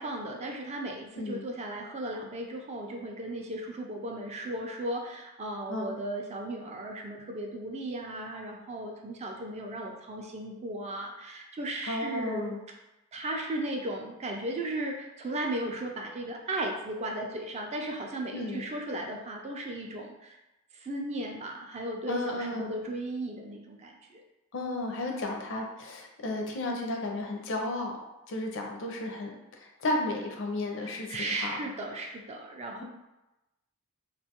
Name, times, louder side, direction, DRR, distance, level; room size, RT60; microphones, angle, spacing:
voice 1, 0.0-12.5 13.1-20.4 20.7-24.2 30.8-32.8, right 1 dB, 30° right, 1 dB, 0.3 m, -36 dB
voice 2, 11.8-12.6 18.3-18.6 22.1-22.9 24.5-28.0 28.3-31.6, left 2 dB, 60° left, 1 dB, 0.5 m, -33 dB
2.4 x 2.2 x 2.8 m, 0.97 s
head